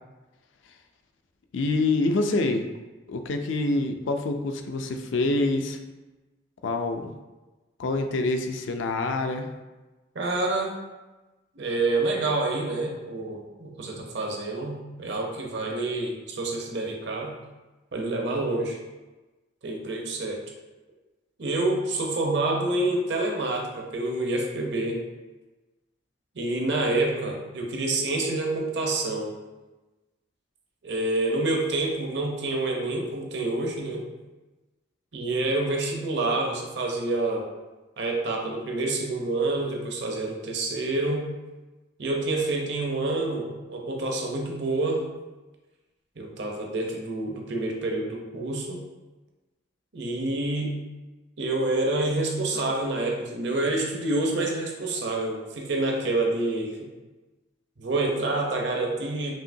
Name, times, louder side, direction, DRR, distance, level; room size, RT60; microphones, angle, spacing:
voice 1, 1.5-2.7 3.1-5.8 6.6-7.1 7.8-9.5, left 2 dB, 75° left, 6 dB, 0.4 m, -26 dB
voice 2, 10.1-10.7 11.6-17.3 17.9-18.8 19.6-20.4 21.4-25.0 26.3-29.3 30.8-34.1 35.1-37.4 38.0-41.3 42.0-45.1 46.2-48.8 49.9-50.8 51.4-56.8 57.8-59.3, right 2 dB, 60° right, 0 dB, 0.7 m, -27 dB
5.5 x 2.8 x 2.6 m, 1.1 s
head